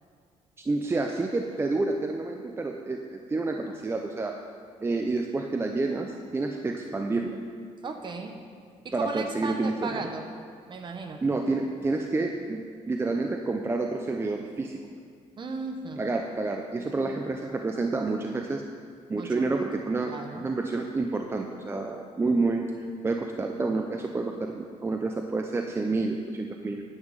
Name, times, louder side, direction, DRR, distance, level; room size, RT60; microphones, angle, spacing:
voice 1, 0.6-4.4 4.8-7.4 8.9-10.0 11.2-14.8 16.0-18.6 19.1-22.6 23.0-26.8, right 3 dB, 20° right, 3 dB, 0.5 m, -29 dB
voice 2, 7.8-8.4 8.8-10.3 10.7-11.2 15.4-16.0 17.0-17.2 19.2-19.6 20.0-20.4, right 4 dB, 40° right, 5 dB, 1.0 m, -36 dB
9.7 x 9.3 x 5.3 m, 2.1 s
cardioid pair, 130°, 12 cm